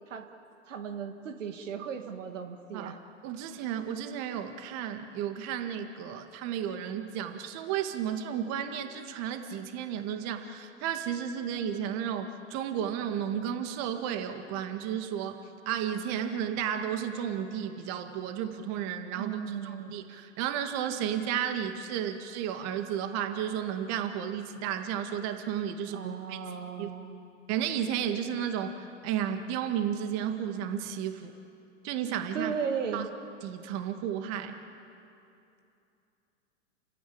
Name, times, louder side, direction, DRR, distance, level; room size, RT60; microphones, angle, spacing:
voice 1, 0.7-3.0 19.2-20.1 25.9-27.2 32.3-33.1, right 7 dB, 75° right, 6 dB, 2.0 m, -36 dB
voice 2, 3.2-15.4 15.7-26.4 26.8-26.9 27.5-31.3 31.8-32.6 32.9-33.0 33.4-34.6, right 9 dB, 45° right, 7 dB, 2.0 m, -33 dB
29.0 x 17.0 x 8.8 m, 2.7 s
hypercardioid pair, 105°, 38 cm